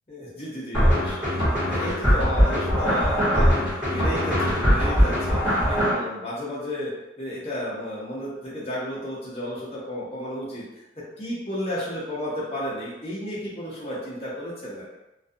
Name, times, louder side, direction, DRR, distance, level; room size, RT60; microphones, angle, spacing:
voice 1, 0.1-1.3 1.7-6.9 7.2-10.6 11.2-14.8, left 1 dB, 35° left, -7 dB, 0.6 m, -32 dB
sound 1, 0.7-5.9, equal, 5° right, 1.1 m, -21 dB
2.3 x 2.3 x 2.6 m, 0.95 s
head